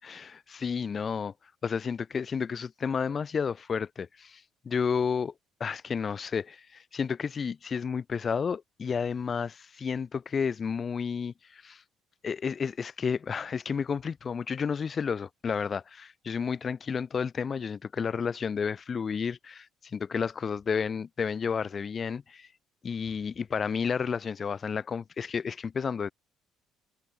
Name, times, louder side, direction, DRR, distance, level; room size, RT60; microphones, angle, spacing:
voice 1, 0.0-1.3 1.6-5.3 5.6-11.8 12.2-19.7 19.9-22.5 22.8-26.1, left 6 dB, 40° left, 2.4 m, -31 dB
open air
supercardioid pair, 70°, 0 cm